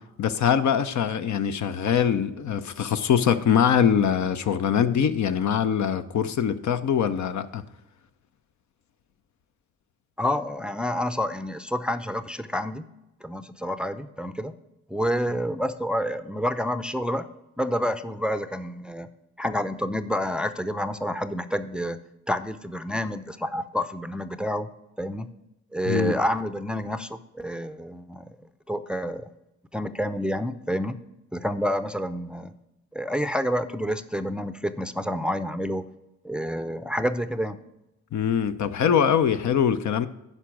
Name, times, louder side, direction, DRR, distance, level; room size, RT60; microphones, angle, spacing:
voice 1, 0.2-7.6 25.9-26.1 38.1-40.1, left 8 dB, 60° left, 0.6 m, -23 dB
voice 2, 10.2-12.8 13.2-14.5 14.9-17.3 17.6-19.1 19.4-22.0 22.3-24.7 25.0-25.3 25.7-28.3 28.7-29.3 29.7-31.0 31.3-32.5 32.9-35.8 36.2-37.6, equal, 5° right, 0.5 m, -28 dB
9.9 x 5.2 x 6.0 m
supercardioid pair, 45°, 33 cm